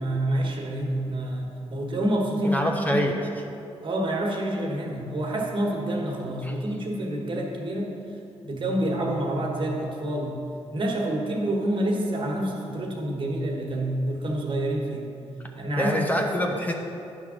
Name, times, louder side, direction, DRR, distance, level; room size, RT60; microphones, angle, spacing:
voice 1, 0.0-3.1 3.8-7.9 8.4-10.4 10.7-15.1 15.6-16.1, right 1 dB, 50° right, 0 dB, 1.4 m, -27 dB
voice 2, 2.4-3.1 6.4-6.5 15.8-16.7, equal, 15° left, 2 dB, 0.8 m, -25 dB
10.0 x 3.6 x 6.3 m, 2.7 s
cardioid pair, 80°, 11 cm